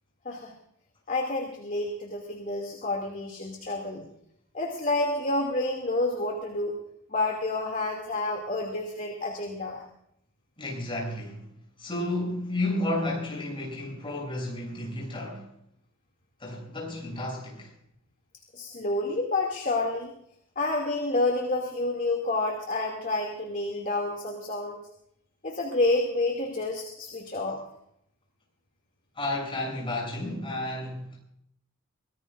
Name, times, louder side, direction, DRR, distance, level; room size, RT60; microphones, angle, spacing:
voice 1, 1.1-4.0 4.5-6.7 7.1-9.8 18.5-20.1 20.6-24.8 25.4-27.6, left 2 dB, 40° left, 2.5 m, -29 dB
voice 2, 10.6-11.4 11.8-15.5 16.4-17.7 29.2-31.2, left 1 dB, 25° left, 7.8 m, -32 dB
24.5 x 18.5 x 2.6 m
head